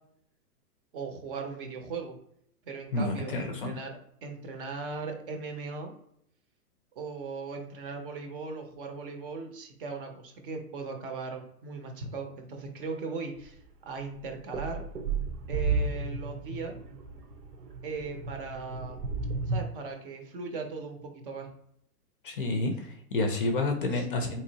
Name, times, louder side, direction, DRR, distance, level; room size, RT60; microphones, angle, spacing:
voice 1, 0.9-2.2 2.6-5.9 7.0-14.8 15.5-16.8 17.8-19.0 19.5-21.5 23.9-24.1, right 4 dB, 35° right, 4 dB, 0.7 m, -38 dB
voice 2, 2.9-3.7 22.2-24.4, left 2 dB, 35° left, 4 dB, 0.5 m, -29 dB
sound 1, 13.4-13.5 14.0-19.6, right 4 dB, 90° right, 1.1 m, -33 dB
3.8 x 3.0 x 2.8 m, 0.70 s
hypercardioid pair, 155°, 46 cm